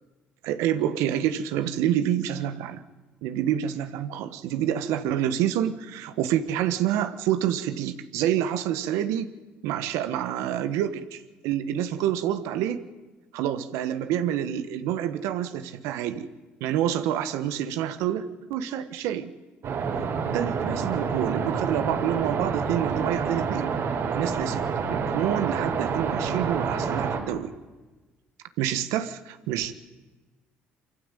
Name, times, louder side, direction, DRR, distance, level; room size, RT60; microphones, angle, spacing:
voice 1, 0.4-2.8 3.2-9.3 9.6-12.8 13.3-16.3 16.6-19.3 20.3-23.7 24.1-24.6 24.9-27.5 28.6-29.7, right 10 dB, 80° right, 11 dB, 1.3 m, -27 dB
sound 1, 19.6-27.2, right 5 dB, 65° right, 4.7 m, -28 dB
24.5 x 15.0 x 9.1 m, 1.2 s
supercardioid pair, 65°, 5 cm